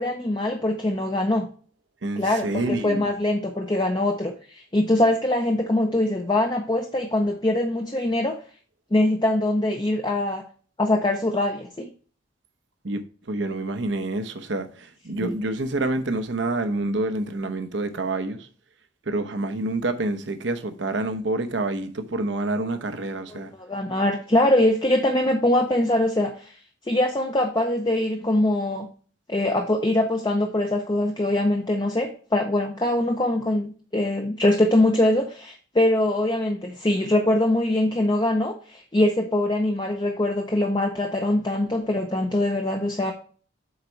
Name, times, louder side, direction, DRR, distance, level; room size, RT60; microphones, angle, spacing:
voice 1, 0.0-1.5 2.2-8.4 8.9-10.4 10.8-11.9 15.2-15.3 23.3-26.6 26.9-28.9 29.3-43.1, left 1 dB, 25° left, 0.6 m, -23 dB
voice 2, 2.0-3.1 12.8-18.5 19.1-23.5, right 2 dB, 70° right, 0.8 m, -27 dB
8.0 x 4.0 x 4.5 m
head